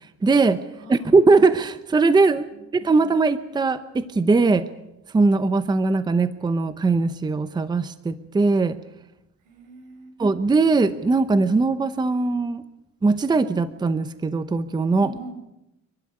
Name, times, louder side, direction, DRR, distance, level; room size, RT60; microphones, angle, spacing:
voice 1, 0.2-0.6 0.9-2.5 2.7-4.7 5.1-8.8 10.2-12.6 13.0-15.1, right 3 dB, 15° right, 12 dB, 0.8 m, -20 dB
voice 2, 0.8-1.2 2.5-2.7 9.4-10.1 15.0-15.3, right 2 dB, 85° right, 5 dB, 6.2 m, -41 dB
29.5 x 12.0 x 9.9 m, 0.91 s
cardioid pair, 155°, 32 cm